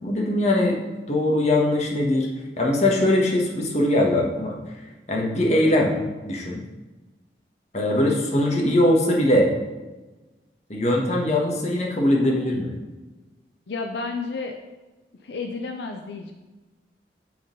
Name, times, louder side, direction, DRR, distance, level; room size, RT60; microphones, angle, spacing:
voice 1, 0.0-0.8 1.1-2.3 2.6-4.5 5.1-5.9 6.2-6.6 7.7-9.5 10.7-12.7, left 1 dB, 40° left, -1 dB, 1.2 m, -21 dB
voice 2, 13.7-14.6 15.2-16.3, left 4 dB, 75° left, 4 dB, 0.5 m, -31 dB
7.7 x 3.9 x 5.2 m, 1.2 s
head